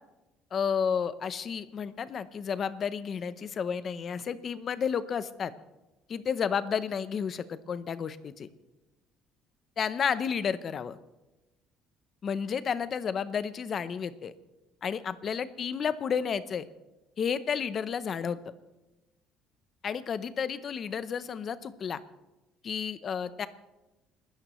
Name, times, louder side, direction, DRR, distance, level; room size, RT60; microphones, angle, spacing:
voice 1, 0.5-5.5 6.1-8.5 9.8-11.0 12.2-14.3 14.8-16.6 17.2-18.4 19.8-22.0 22.6-23.5, left 7 dB, 35° left, 14 dB, 0.7 m, -31 dB
28.5 x 13.5 x 3.1 m, 1.0 s
cardioid pair, 155°, 0 cm